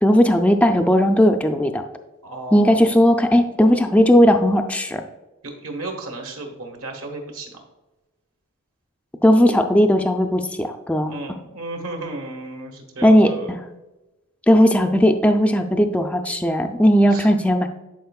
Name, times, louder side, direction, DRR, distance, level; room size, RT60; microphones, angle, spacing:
voice 1, 0.0-1.8 2.5-5.0 9.2-11.1 13.0-13.6 14.5-17.7, equal, 5° left, 5 dB, 0.4 m, -16 dB
voice 2, 2.2-2.9 5.4-7.6 11.0-13.5 17.1-17.3, right 2 dB, 70° right, 2 dB, 1.5 m, -34 dB
10.5 x 4.6 x 2.3 m, 1.1 s
head